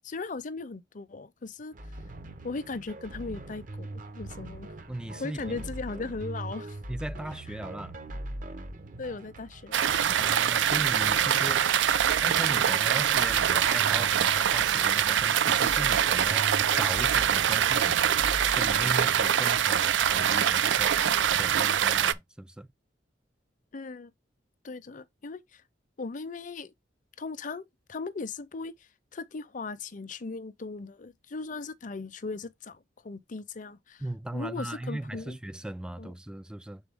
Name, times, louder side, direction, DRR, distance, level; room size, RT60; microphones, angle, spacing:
voice 1, 0.0-1.7 2.4-4.7 5.2-6.8 7.5-7.6 9.0-9.8 23.7-24.1 24.6-25.6 26.0-26.7 27.2-34.0 34.3-35.4 36.0-36.1, left 3 dB, 45° left, 0.6 m, -38 dB
sound 1, 1.7-21.6, right 1 dB, 45° right, 0.8 m, -42 dB
voice 2, 4.9-5.6 6.9-8.0 10.2-11.8 12.2-21.0 21.4-22.7 34.0-36.8, right 1 dB, 5° right, 0.3 m, -38 dB
sound 2, 9.7-22.1, right 9 dB, 80° right, 0.4 m, -24 dB
7.1 x 4.0 x 3.6 m
head